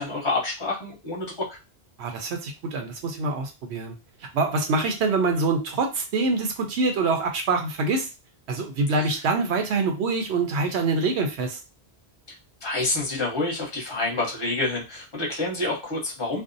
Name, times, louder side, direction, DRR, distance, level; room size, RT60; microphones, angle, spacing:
voice 1, 0.0-1.5 9.0-9.1 12.6-16.4, left 2 dB, 25° left, -3 dB, 0.8 m, -28 dB
voice 2, 2.0-3.9 4.3-8.1 8.5-11.6, right 3 dB, 75° right, 4 dB, 0.8 m, -25 dB
2.5 x 2.0 x 2.5 m, 0.27 s
omnidirectional pair, 1.1 m